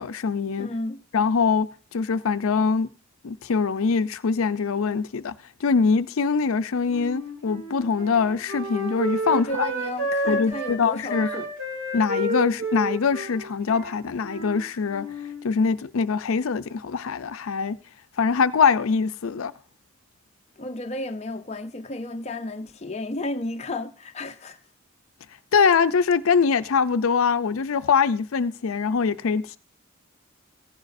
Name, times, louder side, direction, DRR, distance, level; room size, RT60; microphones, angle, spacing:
voice 1, 0.0-0.7 1.1-2.9 3.2-5.3 5.6-9.7 10.3-11.4 11.9-15.1 15.4-17.8 18.2-19.5 25.5-29.6, left 5 dB, 85° left, 0.5 m, -23 dB
voice 2, 0.6-1.0 9.3-11.5 20.6-24.6, left 2 dB, 30° left, 0.6 m, -33 dB
Wind instrument woodwind instrument, 6.9-10.8 11.1-14.6 14.9-15.4, right 1 dB, 60° right, 3.2 m, -31 dB
15.5 x 10.5 x 2.6 m
head